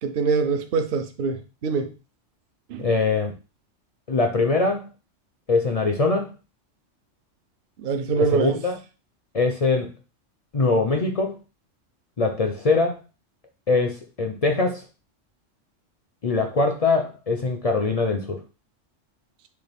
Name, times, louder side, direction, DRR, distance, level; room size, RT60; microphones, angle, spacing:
voice 1, 0.0-1.9 2.7-2.9 7.8-8.6, right 5 dB, 55° right, 0.7 m, -24 dB
voice 2, 2.8-3.3 4.1-4.9 5.5-6.3 8.1-8.8 9.3-9.9 10.5-11.4 12.2-13.0 13.7-14.8 16.2-18.4, left 3 dB, 45° left, 0.5 m, -22 dB
6.6 x 2.3 x 3.4 m
omnidirectional pair, 1.3 m